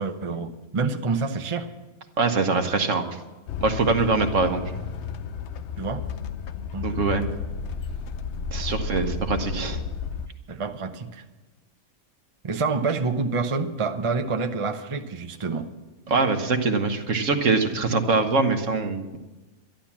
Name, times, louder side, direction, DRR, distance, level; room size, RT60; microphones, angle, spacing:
voice 1, 0.0-1.7 5.8-6.0 6.7-7.0 10.5-11.2 12.4-15.7, right 4 dB, 30° right, 4 dB, 0.6 m, -27 dB
voice 2, 2.2-3.0 3.6-4.6 6.8-7.2 8.5-9.8 16.1-19.2, right 4 dB, 60° right, 6 dB, 1.5 m, -23 dB
sound 1, 3.5-10.3, left 6 dB, 60° left, 0.9 m, -32 dB
12.0 x 11.5 x 7.2 m, 1.1 s
omnidirectional pair, 1.5 m